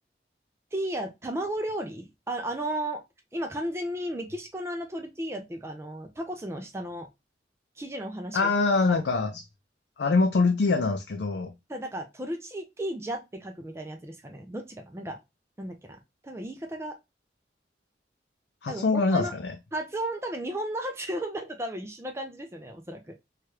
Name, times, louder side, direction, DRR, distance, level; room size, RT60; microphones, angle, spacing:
voice 1, 0.7-3.0 3.3-7.1 7.8-8.5 11.7-15.2 15.6-16.9 18.7-19.3 19.7-23.1, right 1 dB, 15° right, 0.4 m, -34 dB
voice 2, 8.3-9.4 10.0-11.5 18.6-19.6, left 3 dB, 80° left, 0.4 m, -24 dB
2.9 x 2.4 x 3.0 m
head